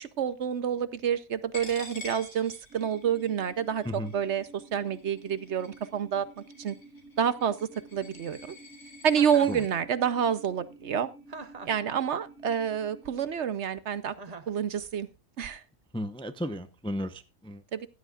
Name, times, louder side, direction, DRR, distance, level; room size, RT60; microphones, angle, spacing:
voice 1, 0.0-6.3 6.6-6.7 7.2-8.5 9.0-11.1 11.7-14.1 14.5-15.1 15.4-15.6 17.7-17.9, right 8 dB, 60° right, 1.0 m, -28 dB
Coin (dropping), 1.5-9.7, left 2 dB, 90° left, 3.8 m, -48 dB
sound 1, 2.7-13.3, right 2 dB, 85° right, 3.5 m, -52 dB
Chuckle chortle, 9.1-9.6 11.3-11.9 14.2-14.6, right 4 dB, 35° right, 0.8 m, -43 dB
voice 2, 15.9-17.6, equal, 5° left, 0.5 m, -34 dB
15.5 x 11.0 x 2.4 m
omnidirectional pair, 1.4 m